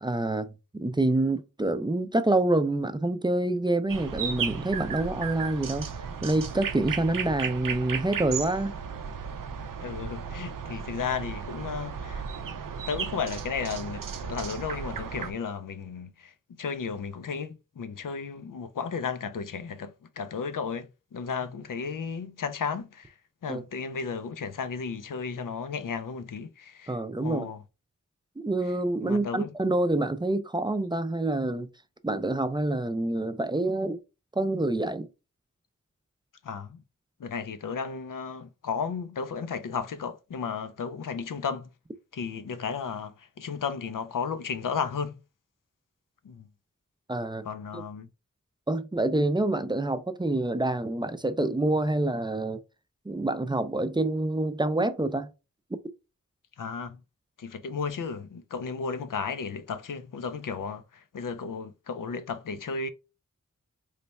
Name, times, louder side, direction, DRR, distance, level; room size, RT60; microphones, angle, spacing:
voice 1, 0.0-6.0 6.2-8.7 23.5-23.6 26.9-27.5 28.4-31.7 32.0-34.0 34.4-35.1 47.1-47.5 47.7-47.8 48.7-52.6 53.1-55.3, right 2 dB, 15° right, 0.4 m, -27 dB
sound 1, 3.9-15.3, right 6 dB, 85° right, 0.5 m, -35 dB
voice 2, 9.8-12.2 12.9-23.1 23.4-27.6 29.0-29.5 36.4-36.8 37.2-41.7 42.1-45.2 46.2-46.5 47.4-48.1 56.6-57.0 57.4-62.9, left 5 dB, 80° left, 0.5 m, -34 dB
3.2 x 2.2 x 4.0 m
wide cardioid pair, 55°, 32 cm